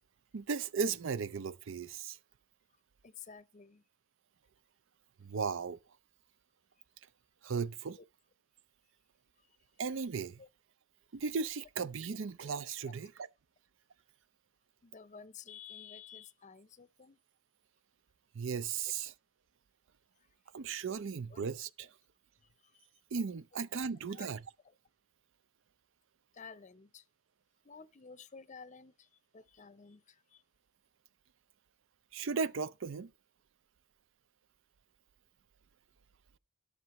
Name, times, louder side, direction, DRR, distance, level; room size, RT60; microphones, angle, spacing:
voice 1, 0.3-2.2 5.2-5.8 7.4-8.0 9.8-10.4 11.1-13.1 18.3-19.1 20.5-21.9 23.1-24.4 32.1-33.1, right 5 dB, 65° right, 0.5 m, -36 dB
voice 2, 3.0-3.8 8.0-8.1 10.4-10.5 12.8-13.0 14.8-17.2 21.3-21.4 22.6-22.9 24.1-24.3 26.3-27.0 27.6-29.1 29.3-30.4, left 6 dB, 35° left, 0.6 m, -52 dB
13.5 x 10.5 x 3.0 m
head